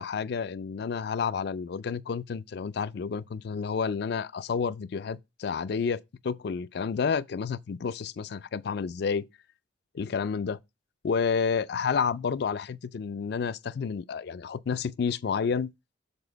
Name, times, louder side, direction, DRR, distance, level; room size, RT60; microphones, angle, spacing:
voice 1, 0.0-9.2 9.9-10.6 11.0-15.7, left 6 dB, 60° left, 0.4 m, -30 dB
7.0 x 4.0 x 4.0 m
head